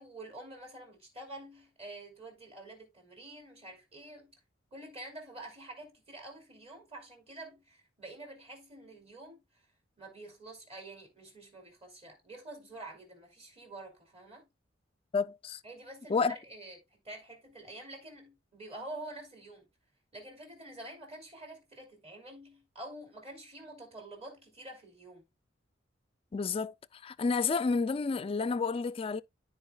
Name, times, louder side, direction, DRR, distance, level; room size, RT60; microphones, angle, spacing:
voice 1, 0.0-4.3 4.7-9.4 10.0-14.5 15.6-19.7 20.1-25.2, right 1 dB, 35° right, 2.8 m, -47 dB
voice 2, 15.1-15.6 16.1-16.4 26.3-26.7 27.0-29.2, left 4 dB, 30° left, 0.3 m, -30 dB
13.5 x 4.6 x 2.2 m
head